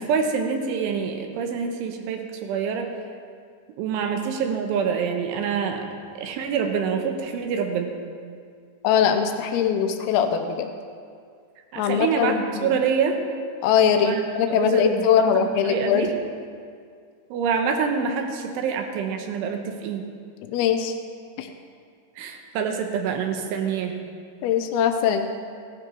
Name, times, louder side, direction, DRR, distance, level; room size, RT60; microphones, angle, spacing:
voice 1, 0.0-2.9 3.8-5.9 6.2-7.9 11.7-13.2 14.0-14.2 14.5-16.1 17.3-20.1 22.2-24.0, right 6 dB, 85° right, 4 dB, 3.6 m, -26 dB
voice 2, 8.8-10.7 11.8-12.7 13.6-16.1 20.5-20.9 21.4-21.5 24.4-25.3, left 8 dB, 90° left, 6 dB, 2.2 m, -21 dB
17.0 x 12.5 x 4.5 m, 2.1 s
omnidirectional pair, 5.4 m